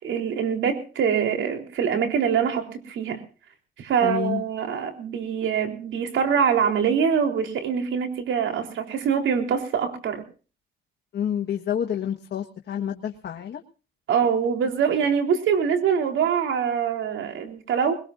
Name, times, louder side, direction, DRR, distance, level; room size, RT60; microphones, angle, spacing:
voice 1, 0.0-3.2 3.8-10.2 14.1-17.9, right 7 dB, 75° right, 5 dB, 3.8 m, -24 dB
voice 2, 4.0-4.4 11.1-13.6, left 9 dB, 60° left, 4 dB, 1.5 m, -28 dB
21.0 x 20.5 x 2.6 m, 0.36 s
cardioid pair, 90°, 20 cm